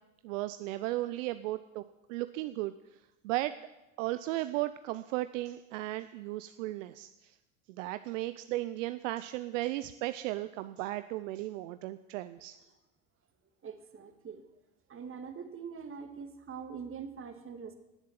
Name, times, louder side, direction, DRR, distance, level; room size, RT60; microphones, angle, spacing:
voice 1, 0.2-1.8 2.1-3.5 4.0-7.4 7.7-12.6, right 17 dB, 65° right, 12 dB, 0.7 m, -35 dB
voice 2, 13.6-14.4 14.9-17.8, right 6 dB, 30° right, 7 dB, 2.2 m, -43 dB
18.5 x 7.4 x 7.4 m, 0.97 s
hypercardioid pair, 85°, 40 cm